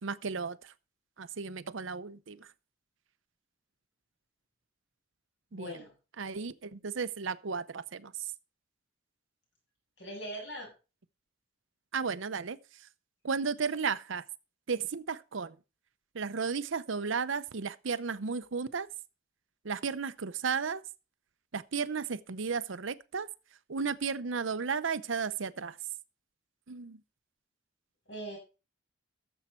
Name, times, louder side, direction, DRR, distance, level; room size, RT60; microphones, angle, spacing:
voice 1, 0.0-0.6 1.2-2.5 5.5-5.8 6.2-8.1 11.9-12.6 13.2-14.2 14.7-15.6 16.1-18.9 19.6-20.8 21.5-23.3 23.7-25.8 26.7-27.0, right 5 dB, 80° right, 0.7 m, -34 dB
voice 2, 5.5-5.9 10.0-10.7 28.1-28.4, right 1 dB, 65° left, 7.2 m, -40 dB
14.0 x 7.3 x 4.5 m
head